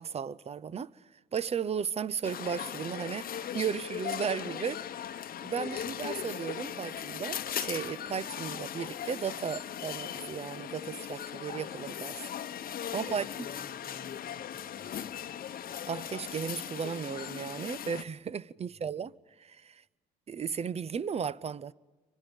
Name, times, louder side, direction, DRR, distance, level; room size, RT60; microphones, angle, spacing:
voice 1, 0.0-5.1 5.4-12.3 12.9-13.3 15.9-19.1 19.4-19.8 20.3-21.7, right 7 dB, 35° right, 0.6 m, -35 dB
sound 1, 2.2-18.0, left 9 dB, 50° left, 0.9 m, -38 dB
voice 2, 5.6-6.0 13.1-15.1 18.6-19.0, right 2 dB, 70° right, 7.5 m, -58 dB
28.5 x 25.0 x 5.4 m
cardioid pair, 85°, 19 cm